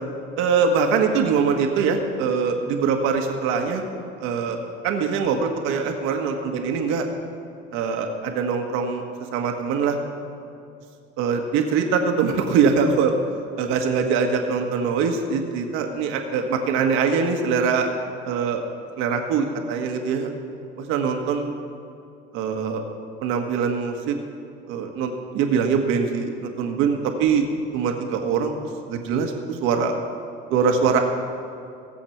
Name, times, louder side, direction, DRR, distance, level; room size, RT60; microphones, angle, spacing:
voice 1, 0.4-3.9 4.2-4.6 4.8-7.1 7.7-9.0 9.3-10.0 11.2-13.1 13.6-17.9 18.2-18.6 19.0-20.3 20.8-21.5 22.3-22.8 23.2-24.2 24.7-27.4 27.7-28.6 28.9-29.9 30.5-31.0, right 5 dB, 90° right, 4 dB, 1.5 m, -23 dB
17.5 x 7.9 x 5.9 m, 2.5 s
cardioid pair, 135°, 20 cm